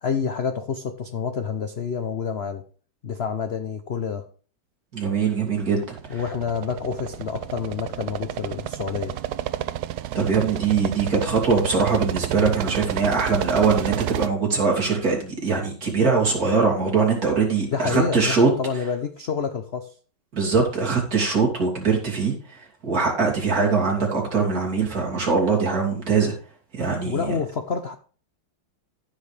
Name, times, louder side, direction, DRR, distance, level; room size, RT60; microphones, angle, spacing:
voice 1, 0.0-2.6 3.0-4.3 6.1-9.2 17.7-19.9 27.0-27.9, left 6 dB, 85° left, 8 dB, 0.5 m, -28 dB
voice 2, 4.9-6.2 10.1-18.5 20.3-22.3 22.8-26.3 26.7-27.3, right 5 dB, 45° right, -2 dB, 3.2 m, -22 dB
sound 1, 5.6-14.3, right 12 dB, 70° right, 0.9 m, -30 dB
14.5 x 6.6 x 3.3 m, 0.41 s
omnidirectional pair, 2.1 m